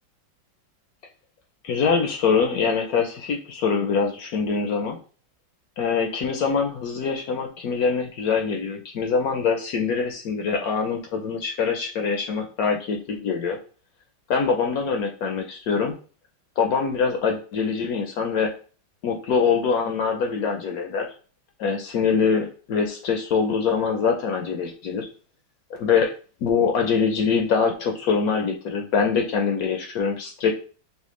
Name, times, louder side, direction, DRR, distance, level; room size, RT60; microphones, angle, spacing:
voice 1, 1.6-5.0 5.8-13.6 14.3-15.9 16.6-18.5 19.0-21.1 21.6-25.1 25.8-26.1 26.4-30.5, left 5 dB, 70° left, 3 dB, 0.9 m, -24 dB
5.9 x 2.2 x 3.1 m, 0.38 s
omnidirectional pair, 2.1 m